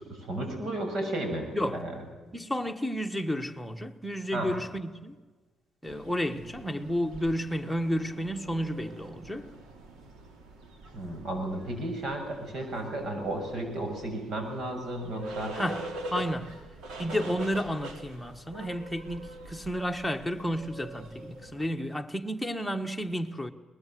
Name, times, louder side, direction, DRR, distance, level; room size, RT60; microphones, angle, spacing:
voice 1, 0.0-1.9 4.3-4.5 10.9-15.6, right 1 dB, 65° right, 7.1 m, -33 dB
voice 2, 2.3-5.2 5.8-9.5 15.5-16.6 17.0-23.5, equal, ahead, 1.5 m, -32 dB
sound 1, 5.9-21.6, right 1 dB, 80° right, 3.4 m, -44 dB
22.5 x 20.5 x 7.8 m
cardioid pair, 90°, 0 cm